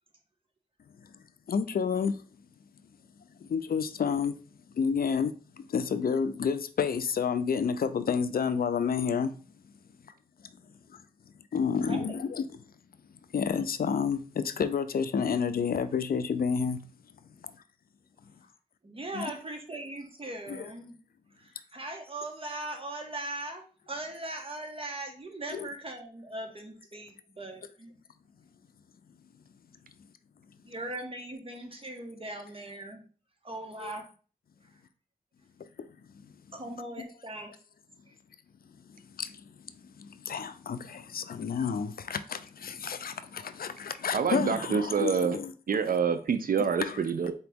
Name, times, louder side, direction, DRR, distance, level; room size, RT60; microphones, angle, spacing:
voice 1, 1.5-2.2 3.4-4.4 4.8-9.4 11.5-12.4 13.3-16.8 17.4-17.5 19.1-19.3 20.5-20.7 25.5-25.7 33.8-33.9 35.8-35.9 37.0-37.1 39.2-39.3 40.0-45.5 46.8-47.0, left 6 dB, 70° left, 0.4 m, -30 dB
voice 2, 11.7-12.2 18.8-21.0 21.4-27.9 30.6-33.0 33.4-34.1 36.5-37.5, right 2 dB, 35° right, 1.1 m, -39 dB
voice 3, 44.1-45.4 45.7-47.3, right 6 dB, 70° right, 0.4 m, -27 dB
4.2 x 2.9 x 3.5 m
wide cardioid pair, 70°, 16 cm